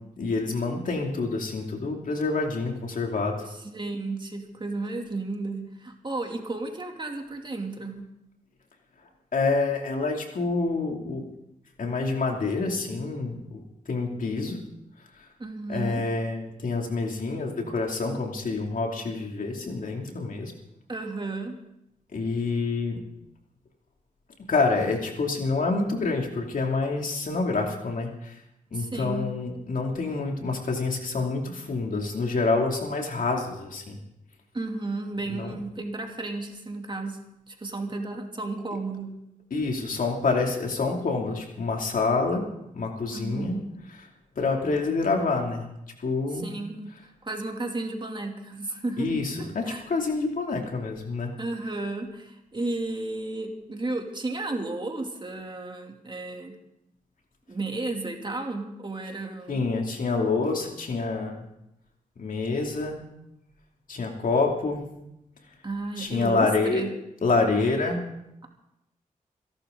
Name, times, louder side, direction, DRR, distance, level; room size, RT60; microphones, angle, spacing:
voice 1, 0.2-3.3 9.3-11.2 11.8-13.6 13.9-14.6 15.2-15.3 15.7-20.5 22.1-23.0 24.5-28.4 28.7-34.0 35.3-35.6 39.5-42.4 42.7-43.6 44.4-45.7 46.0-46.5 49.0-51.3 59.5-61.4 62.2-63.0 63.9-64.8 66.0-66.8 67.2-68.0, left 3 dB, 70° left, 1 dB, 2.7 m, -27 dB
voice 2, 3.5-8.1 15.4-16.0 20.9-21.6 28.7-29.3 34.5-37.2 37.5-39.1 43.1-43.7 46.3-46.9 47.2-49.1 49.4-49.8 51.4-56.6 57.5-59.7 65.6-66.9, right 2 dB, 35° right, 2 dB, 2.7 m, -33 dB
27.0 x 11.5 x 3.9 m, 0.84 s
cardioid pair, 60°, 14 cm